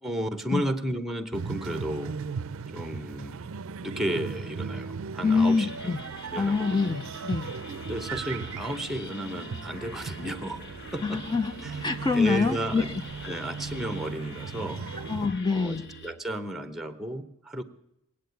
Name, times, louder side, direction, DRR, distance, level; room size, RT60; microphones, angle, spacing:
voice 1, 0.0-2.2 2.7-3.5 3.8-6.0 6.3-7.0 7.8-10.6 10.9-11.2 11.6-11.8 12.1-12.9 13.2-15.1 15.5-17.6, right 1 dB, ahead, 0.9 m, -33 dB
sound 1, 1.3-15.3, right 5 dB, 65° right, 0.5 m, -38 dB
sound 2, 5.2-16.1, left 2 dB, 55° left, 1.3 m, -45 dB
voice 2, 5.2-6.0 6.4-7.5 11.0-11.5 11.8-12.8 15.1-15.8, left 4 dB, 20° left, 0.5 m, -25 dB
20.5 x 8.6 x 8.1 m
head